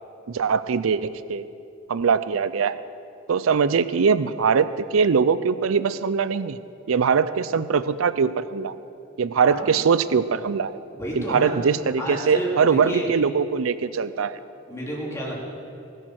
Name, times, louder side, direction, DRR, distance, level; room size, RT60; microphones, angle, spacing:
voice 1, 0.3-1.5 1.9-2.8 3.3-6.6 6.9-8.7 9.2-10.8 11.2-14.4, right 6 dB, 80° right, 14 dB, 0.5 m, -22 dB
voice 2, 10.9-11.5 12.0-13.1 14.7-15.4, right 1 dB, 15° left, -4 dB, 3.4 m, -30 dB
20.0 x 7.8 x 6.4 m, 2.7 s
head